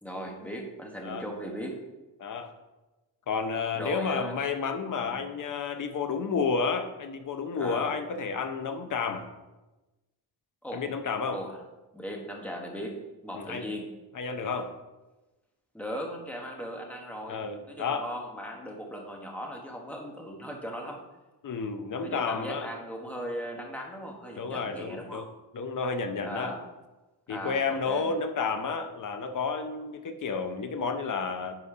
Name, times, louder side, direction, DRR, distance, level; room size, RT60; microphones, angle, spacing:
voice 1, 0.0-1.8 3.8-4.3 5.0-5.2 7.5-8.0 10.6-10.9 11.3-11.6 11.9-13.9 15.7-17.4 17.7-21.0 22.0-25.2 26.2-26.6 27.3-28.1, equal, 5° left, 0 dB, 1.1 m, -38 dB
voice 2, 2.2-2.5 3.3-9.3 10.7-11.4 13.3-13.7 14.1-14.7 17.3-18.1 21.4-22.7 24.3-25.3 25.5-26.5 27.3-31.5, left 5 dB, 50° left, 8 dB, 0.7 m, -31 dB
11.0 x 4.1 x 4.9 m, 1.1 s
wide cardioid pair, 175°, 41 cm